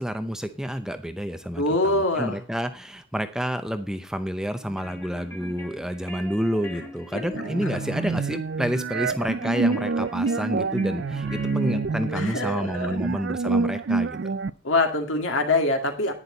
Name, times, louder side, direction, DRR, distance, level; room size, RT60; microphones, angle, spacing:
voice 1, 0.0-14.2, equal, 5° right, 9 dB, 0.6 m, -29 dB
voice 2, 1.6-2.4 7.1-7.2 7.6-7.8 12.1-13.0 14.6-16.1, left 2 dB, 70° left, 5 dB, 2.3 m, -24 dB
sound 1, 4.5-12.6, left 1 dB, 15° left, 2.1 m, -42 dB
sound 2, 7.3-14.5, right 4 dB, 55° right, 0.4 m, -27 dB
11.0 x 10.0 x 3.9 m, 0.34 s
head